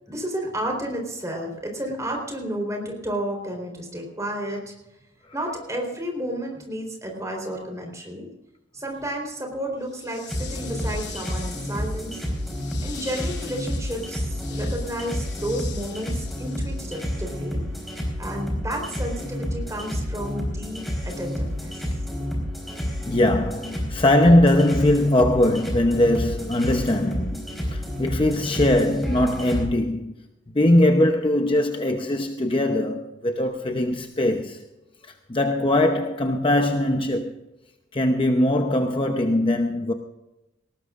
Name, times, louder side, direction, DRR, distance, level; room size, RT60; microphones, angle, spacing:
voice 1, 0.1-4.7 5.3-8.3 8.7-12.2 12.8-17.6 18.2-21.9, right 1 dB, 15° right, 3.9 m, -32 dB
sound 1, 9.8-17.1, left 7 dB, 60° left, 3.0 m, -43 dB
sound 2, 10.3-29.6, equal, ahead, 4.1 m, -30 dB
voice 2, 23.0-30.1 30.5-34.6 35.0-37.3 37.9-39.9, left 1 dB, 25° left, 0.8 m, -21 dB
19.0 x 18.5 x 2.5 m
head